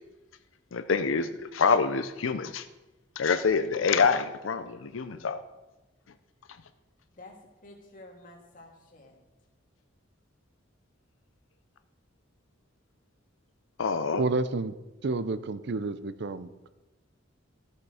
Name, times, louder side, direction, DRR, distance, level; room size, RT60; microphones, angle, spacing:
voice 1, 0.7-2.6 3.2-5.4 13.8-14.2, left 5 dB, 80° left, 10 dB, 0.5 m, -26 dB
voice 2, 7.1-9.2, left 2 dB, 45° left, 1 dB, 1.9 m, -50 dB
voice 3, 14.2-14.7 15.0-16.7, right 3 dB, 60° right, 14 dB, 0.5 m, -30 dB
13.5 x 6.6 x 4.9 m, 1.1 s
head